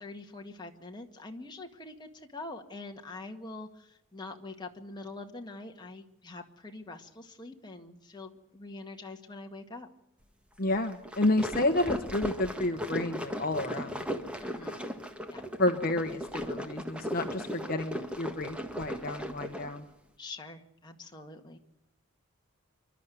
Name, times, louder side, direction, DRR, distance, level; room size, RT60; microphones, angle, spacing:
voice 1, 0.0-9.9 14.4-14.9 15.3-15.4 20.2-21.6, left 2 dB, 20° left, 2 dB, 1.9 m, -44 dB
voice 2, 10.6-14.0 15.6-19.9, left 2 dB, 40° left, 6 dB, 1.2 m, -30 dB
sound 1, 10.9-19.8, equal, 5° right, 1.6 m, -37 dB
27.5 x 12.5 x 9.3 m, 0.82 s
head